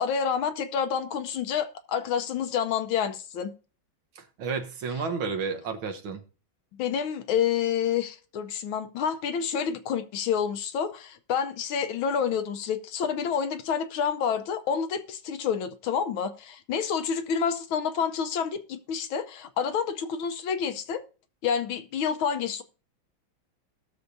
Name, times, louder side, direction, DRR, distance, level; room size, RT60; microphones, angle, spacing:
voice 1, 0.0-3.5 6.7-21.0 21.4-22.6, left 7 dB, 85° left, 1.6 m, -28 dB
voice 2, 4.2-6.2, right 5 dB, 80° right, 1.9 m, -31 dB
19.5 x 6.6 x 2.6 m
omnidirectional pair, 2.2 m